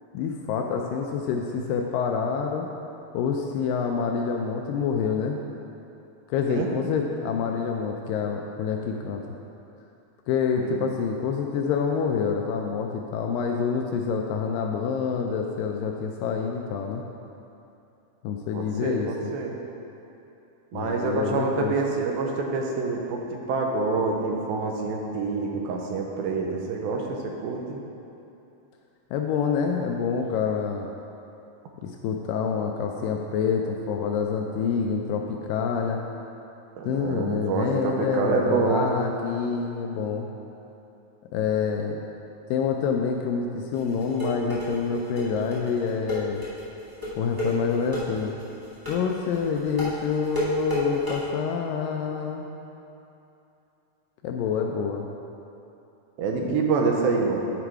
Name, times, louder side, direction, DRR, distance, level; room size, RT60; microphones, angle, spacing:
voice 1, 0.1-2.7 3.1-5.4 6.3-9.2 10.3-17.0 18.2-19.1 20.7-21.7 29.1-30.9 31.8-36.0 36.8-40.3 41.3-42.0 42.5-46.4 47.2-48.3 48.9-52.5 54.2-55.1 56.4-56.5, left 6 dB, 80° left, 2 dB, 2.0 m, -27 dB
voice 2, 18.5-19.6 20.7-27.8 36.8-38.9 56.2-57.4, right 4 dB, 85° right, 1 dB, 2.6 m, -27 dB
sound 1, 43.7-51.2, left 1 dB, 30° right, 0.4 m, -31 dB
10.0 x 4.9 x 4.7 m, 2.9 s
omnidirectional pair, 4.2 m